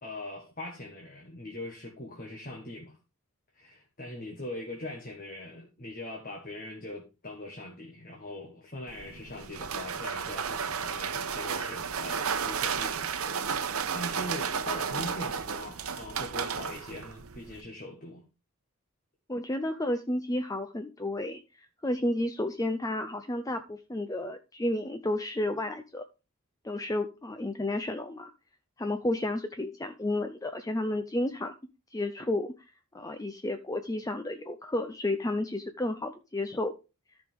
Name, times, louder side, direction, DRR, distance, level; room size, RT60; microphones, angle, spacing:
voice 1, 0.0-3.0 3.5-18.2, left 1 dB, 40° left, 1.5 m, -42 dB
sound 1, 8.9-17.6, right 6 dB, 75° right, 0.8 m, -33 dB
voice 2, 19.3-26.0 26.6-28.3 28.8-31.5 31.9-32.5 32.9-36.7, left 1 dB, 15° left, 0.5 m, -32 dB
13.5 x 5.2 x 3.6 m
head